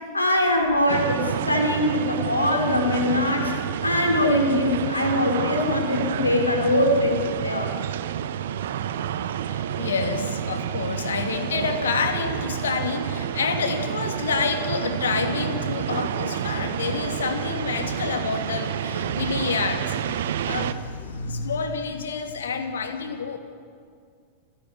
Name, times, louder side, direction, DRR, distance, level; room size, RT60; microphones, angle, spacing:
voice 1, 0.1-3.5 3.8-7.7, left 1 dB, 80° left, 3 dB, 3.8 m, -22 dB
sound 1, 0.9-20.7, right 10 dB, 60° right, 1.1 m, -29 dB
voice 2, 9.5-23.4, left 5 dB, 65° left, 6 dB, 2.7 m, -28 dB
29.0 x 17.0 x 9.7 m, 2.1 s
figure-of-eight pair, 90°, 0 cm